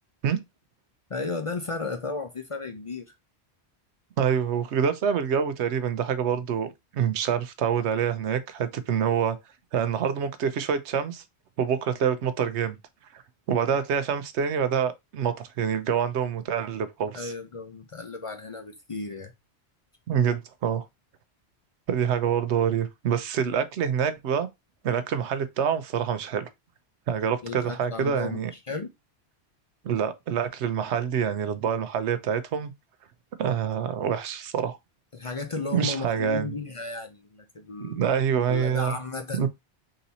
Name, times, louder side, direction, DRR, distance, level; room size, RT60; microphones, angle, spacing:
voice 1, 1.1-3.1 13.6-13.8 17.1-19.3 27.4-28.9 35.1-38.1 38.5-39.5, left 3 dB, 40° left, 0.5 m, -34 dB
voice 2, 4.2-9.4 9.7-11.2 11.6-12.8 13.1-13.2 13.5-17.3 20.1-20.9 21.9-24.5 24.8-26.5 27.1-28.5 29.8-32.7 33.4-34.8 35.7-36.5 37.8-38.9 39.4-39.5, right 8 dB, 90° right, 1.0 m, -26 dB
3.9 x 2.7 x 4.0 m
omnidirectional pair, 1.1 m